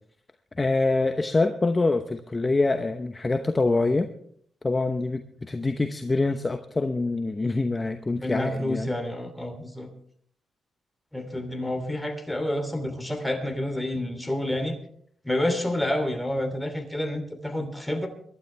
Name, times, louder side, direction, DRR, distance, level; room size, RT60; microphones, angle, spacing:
voice 1, 0.6-4.1 4.6-8.9, left 3 dB, 25° left, 7 dB, 0.9 m, -25 dB
voice 2, 8.2-9.9 11.1-14.7 15.2-18.1, left 1 dB, 5° left, 5 dB, 3.0 m, -29 dB
23.5 x 12.0 x 3.4 m, 0.62 s
cardioid pair, 95°, 0 cm